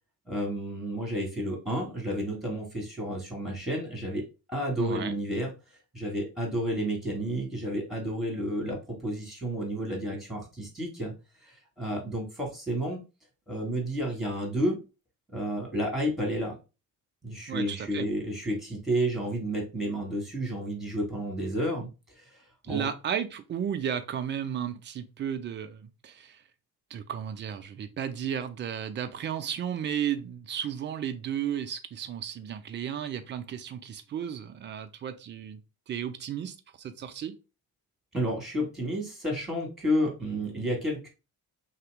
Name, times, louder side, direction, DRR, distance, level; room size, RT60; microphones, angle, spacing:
voice 1, 0.3-5.5 5.9-11.1 11.4-13.0 13.5-14.8 15.3-16.5 17.2-21.9 22.2-22.3 22.7-22.9 38.1-41.1, equal, ahead, 1.6 m, -31 dB
voice 2, 4.8-5.2 17.5-18.1 22.6-26.4 26.9-35.6 35.9-37.4, right 9 dB, 25° right, 0.3 m, -34 dB
3.0 x 2.8 x 3.3 m
figure-of-eight pair, 45°, 50 cm